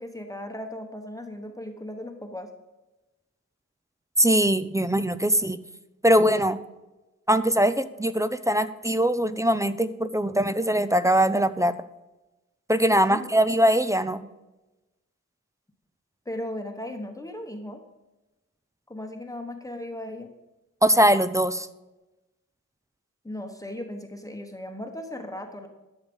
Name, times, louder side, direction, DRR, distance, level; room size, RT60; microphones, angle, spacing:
voice 1, 0.0-2.5 13.0-13.2 16.2-17.8 18.9-20.3 23.2-25.7, left 1 dB, 10° left, 4 dB, 1.0 m, -37 dB
voice 2, 4.2-5.6 6.0-6.6 7.3-11.7 12.7-14.3 20.8-21.7, equal, 10° right, 13 dB, 0.4 m, -21 dB
11.5 x 7.2 x 5.3 m, 1.0 s
wide cardioid pair, 155°, 29 cm